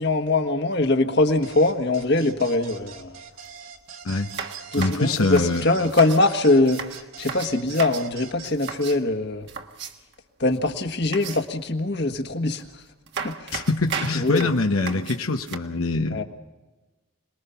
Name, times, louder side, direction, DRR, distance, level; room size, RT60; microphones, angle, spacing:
voice 1, 0.0-3.2 4.7-6.8 7.2-9.5 10.4-12.8 13.2-13.7 14.2-14.6 16.1-16.2, left 2 dB, 50° left, 6 dB, 1.6 m, -22 dB
sound 1, 1.4-9.0, right 7 dB, 70° right, 2.6 m, -43 dB
sound 2, 3.3-3.5 3.8-3.9 4.3-6.3 6.7-8.1 8.4-9.0 9.5-10.1 11.1-11.7 12.6-12.7 13.1-15.6, right 6 dB, 55° right, 1.6 m, -35 dB
voice 2, 4.8-5.6 13.5-16.2, left 3 dB, 85° left, 4 dB, 1.1 m, -24 dB
26.5 x 20.5 x 5.8 m, 1.2 s
head